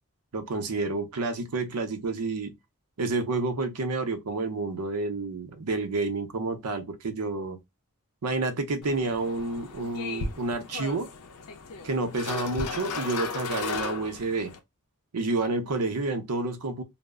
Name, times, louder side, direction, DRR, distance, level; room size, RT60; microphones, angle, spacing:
voice 1, 0.3-2.5 3.0-7.6 8.2-11.1 11.8-14.5 15.1-16.8, right 3 dB, 90° right, 0.6 m, -29 dB
sound 1, 8.8-14.6, left 4 dB, 80° left, 0.5 m, -36 dB
2.0 x 2.0 x 3.4 m
head